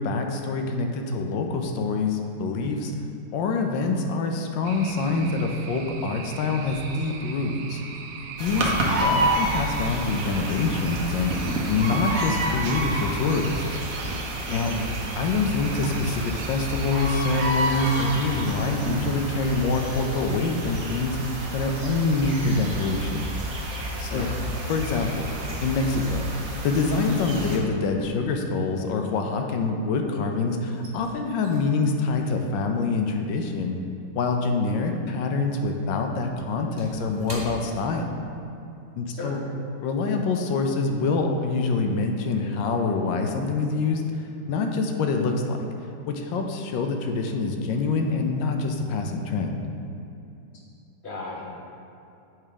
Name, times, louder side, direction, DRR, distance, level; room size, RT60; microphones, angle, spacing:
voice 1, 0.0-2.9 3.3-7.8 8.4-8.7 9.0-13.6 14.5-14.7 15.2-21.2 21.5-23.3 24.0-24.3 24.7-26.3 26.6-33.8 34.1-38.2 39.0-39.4 39.8-44.0 44.5-45.6 46.1-49.6, left 3 dB, 80° left, 4 dB, 1.3 m, -25 dB
sound 1, 4.6-17.6, right 5 dB, 90° right, 1.4 m, -40 dB
sound 2, 8.4-27.6, right 1 dB, 55° right, 1.0 m, -29 dB
voice 2, 14.5-14.9 24.1-24.3 39.1-39.4 51.0-51.4, left 2 dB, 50° left, -4 dB, 0.8 m, -34 dB
sound 3, 29.4-30.1 30.3-35.0 35.3-38.6 38.9-39.1 39.6-39.9, equal, 15° right, 1.0 m, -45 dB
7.4 x 3.6 x 5.0 m, 2.7 s
omnidirectional pair, 2.1 m